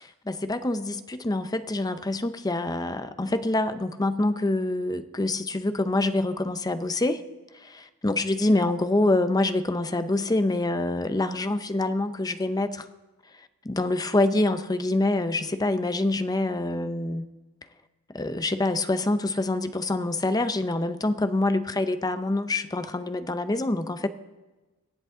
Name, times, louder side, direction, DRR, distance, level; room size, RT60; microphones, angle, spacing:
voice 1, 0.3-7.2 7.6-12.9 13.6-17.3 18.1-24.1, left 2 dB, 15° left, 10 dB, 0.6 m, -26 dB
24.0 x 8.1 x 3.7 m, 1.2 s
head